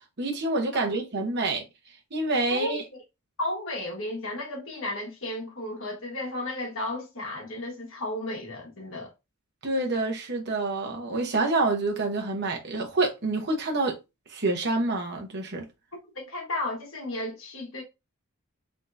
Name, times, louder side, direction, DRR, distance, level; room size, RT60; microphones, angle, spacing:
voice 1, 0.2-1.6 2.1-2.8 9.6-14.0 14.3-15.7, right 2 dB, 50° right, 1.0 m, -27 dB
voice 2, 3.4-9.1 16.1-17.8, left 1 dB, 60° left, 1.5 m, -33 dB
3.6 x 3.4 x 2.7 m
head